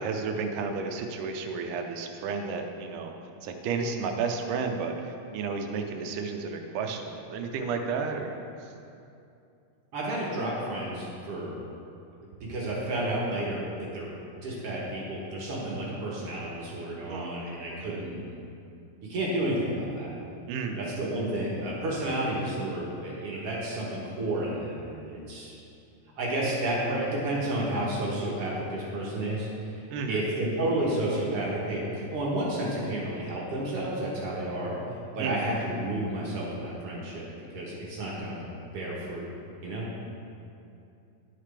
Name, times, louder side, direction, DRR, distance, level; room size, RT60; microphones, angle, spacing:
voice 1, 0.0-3.1 3.4-4.9 5.3-8.3 17.1-17.6 17.9-18.0 20.5-20.8 29.9-30.2 35.2-35.4, right 5 dB, 85° right, 4 dB, 2.2 m, -32 dB
voice 2, 9.9-11.6 12.4-14.1 14.4-18.2 19.1-20.1 20.8-25.5 26.2-29.5 30.1-34.8 35.2-37.3 37.5-38.5 38.7-39.3 39.6-39.8, right 1 dB, 60° right, -5 dB, 1.7 m, -31 dB
11.0 x 5.8 x 3.3 m, 2.6 s
omnidirectional pair, 3.7 m